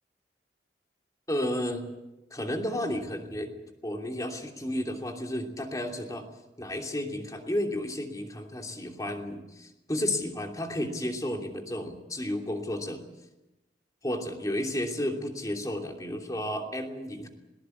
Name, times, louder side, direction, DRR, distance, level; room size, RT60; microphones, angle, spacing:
voice 1, 1.3-1.8 2.3-3.5 3.8-6.2 6.6-13.0 14.0-17.3, left 1 dB, 20° left, 3 dB, 2.9 m, -32 dB
20.5 x 19.5 x 8.5 m, 0.98 s
head